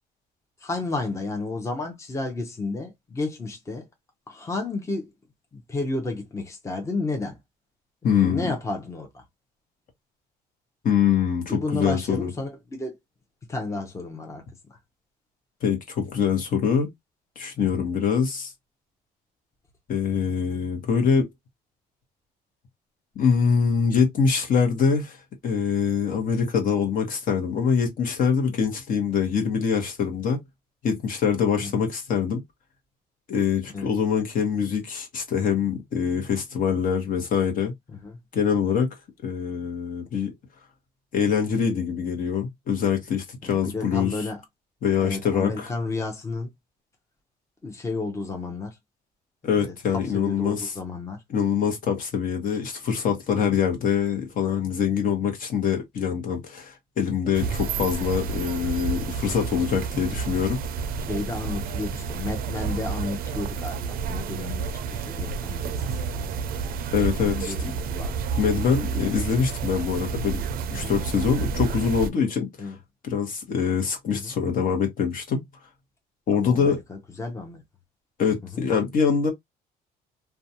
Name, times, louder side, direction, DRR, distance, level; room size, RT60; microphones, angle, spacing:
voice 1, 0.6-3.9 4.3-5.1 5.5-7.4 8.1-9.2 11.5-13.0 13.5-14.4 14.7-14.8 17.6-17.8 31.6-31.8 33.7-33.9 37.9-38.2 43.4-44.4 45.0-46.5 47.6-48.8 49.4-51.2 53.3-53.6 61.0-65.8 66.1-66.3 67.0-68.2 70.7-71.0 72.6-72.7 74.1-74.3 76.3-77.6 78.4-78.6, left 3 dB, 15° left, 0.7 m, -32 dB
voice 2, 8.0-8.5 10.8-12.3 15.6-16.9 17.4-18.5 19.9-21.3 23.2-25.2 25.4-30.4 30.8-32.4 33.3-37.7 38.3-38.9 39.2-40.3 41.1-44.2 44.8-45.7 49.4-50.7 51.3-60.8 66.9-67.5 68.4-70.4 70.7-72.7 73.0-75.4 76.3-76.8 78.2-79.3, left 6 dB, 55° left, 1.0 m, -24 dB
sound 1, 57.3-72.1, right 5 dB, 60° right, 0.4 m, -30 dB
2.4 x 2.2 x 2.7 m
cardioid pair, 110°, 17 cm